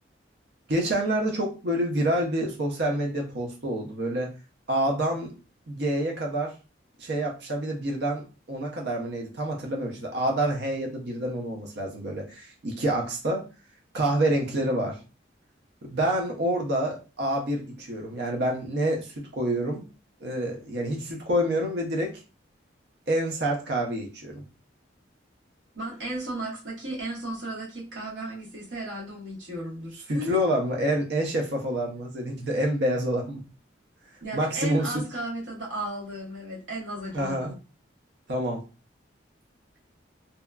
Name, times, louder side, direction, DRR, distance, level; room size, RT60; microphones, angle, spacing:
voice 1, 0.7-4.3 4.7-5.3 5.7-6.5 7.0-13.4 13.9-15.0 15.8-19.8 20.2-22.2 23.1-24.4 30.1-33.4 34.3-35.0 37.1-37.6 38.3-38.6, right 1 dB, 60° right, 0 dB, 0.6 m, -27 dB
voice 2, 25.7-30.4 34.2-37.5, right 1 dB, 80° right, -3 dB, 1.2 m, -34 dB
2.8 x 2.2 x 2.3 m, 0.32 s
head